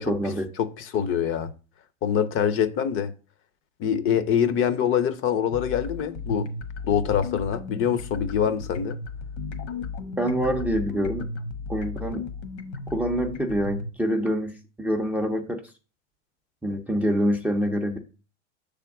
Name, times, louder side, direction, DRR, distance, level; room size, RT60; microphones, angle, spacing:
voice 1, 0.0-0.5 10.2-11.3 11.7-12.2 12.9-15.6 16.6-18.0, equal, 5° right, 0.5 m, -26 dB
voice 2, 0.6-1.5 2.0-3.1 3.8-6.5 6.8-9.0, left 8 dB, 35° left, 0.6 m, -24 dB
sound 1, 5.5-13.9, left 4 dB, 65° left, 1.2 m, -35 dB
6.7 x 3.5 x 5.8 m
supercardioid pair, 125°, 36 cm